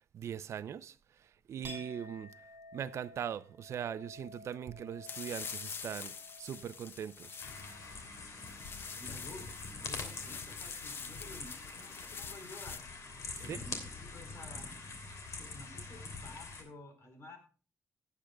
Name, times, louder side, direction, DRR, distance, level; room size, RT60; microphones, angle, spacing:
voice 1, 0.1-0.9 1.5-2.3 2.7-7.4 13.5-13.6, right 9 dB, 65° right, 0.5 m, -40 dB
Chink clink, 1.6-9.3 9.7-10.3, left 1 dB, 40° right, 6.0 m, -54 dB
sound 1, 5.0-12.8, left 5 dB, 50° left, 0.9 m, -46 dB
sound 2, 7.4-16.6, left 4 dB, 80° left, 2.9 m, -44 dB
voice 2, 9.0-12.8 13.4-14.7 15.2-17.4, left 2 dB, 65° left, 4.3 m, -51 dB
17.0 x 9.2 x 2.3 m
wide cardioid pair, 145°, 5 cm